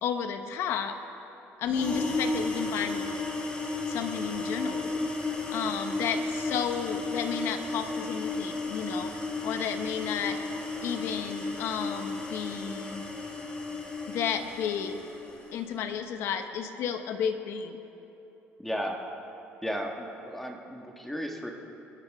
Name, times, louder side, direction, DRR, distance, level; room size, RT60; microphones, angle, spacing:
voice 1, 0.0-1.0 1.6-3.0 3.9-5.1 5.5-9.1 9.4-10.4 10.8-13.0 14.1-15.0 15.5-17.8, left 7 dB, 65° left, 7 dB, 1.1 m, -32 dB
sound 1, 1.7-15.6, left 3 dB, 25° left, 2.1 m, -33 dB
voice 2, 18.6-19.0 19.6-21.5, equal, 5° left, 1 dB, 1.6 m, -34 dB
25.5 x 13.0 x 3.6 m, 3.0 s
cardioid pair, 130°, 4 cm